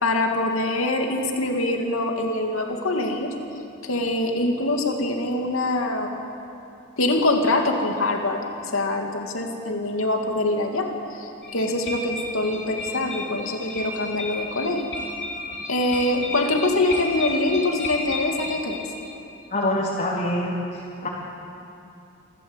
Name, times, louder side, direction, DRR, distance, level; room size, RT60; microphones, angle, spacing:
voice 1, 0.0-3.3 3.8-6.1 7.0-8.4 8.7-10.9 11.2-14.9 15.7-18.8, left 2 dB, 90° left, 2 dB, 2.6 m, -24 dB
sound 1, 11.4-19.1, left 2 dB, 60° left, 3.0 m, -33 dB
voice 2, 19.5-20.6 21.0-21.1, left 1 dB, 40° left, -6 dB, 2.9 m, -24 dB
27.5 x 13.5 x 8.1 m, 2.7 s
head